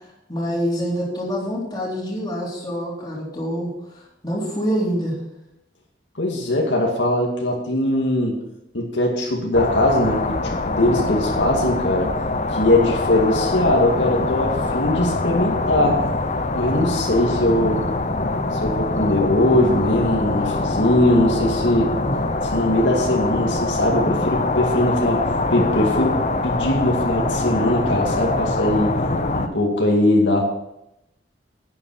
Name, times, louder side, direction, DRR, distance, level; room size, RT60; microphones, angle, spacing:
voice 1, 0.3-3.7 4.2-5.1, equal, 25° left, -4 dB, 3.8 m, -25 dB
voice 2, 6.2-8.4 8.7-12.1 12.5-16.0 16.5-17.8 18.5-21.9 22.5-29.0 29.3-30.4, left 1 dB, 80° left, -1 dB, 2.3 m, -20 dB
sound 1, 9.5-29.5, left 2 dB, 40° left, 0.9 m, -24 dB
11.0 x 9.0 x 5.9 m, 0.86 s
head